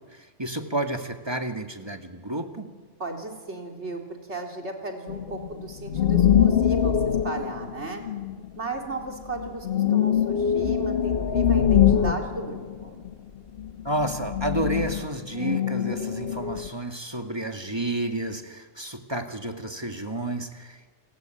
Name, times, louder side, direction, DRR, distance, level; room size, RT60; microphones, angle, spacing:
voice 1, 0.1-2.7 13.8-20.9, right 1 dB, 20° right, 5 dB, 2.1 m, -31 dB
voice 2, 3.0-4.0 4.3-7.0 7.2-8.0 8.6-13.0, right 3 dB, 60° right, 2 dB, 4.1 m, -35 dB
sound 1, 5.1-8.7 9.1-13.3 13.6-16.7, left 8 dB, 50° left, 1.2 m, -24 dB
30.0 x 21.5 x 9.3 m, 1.5 s
omnidirectional pair, 1.3 m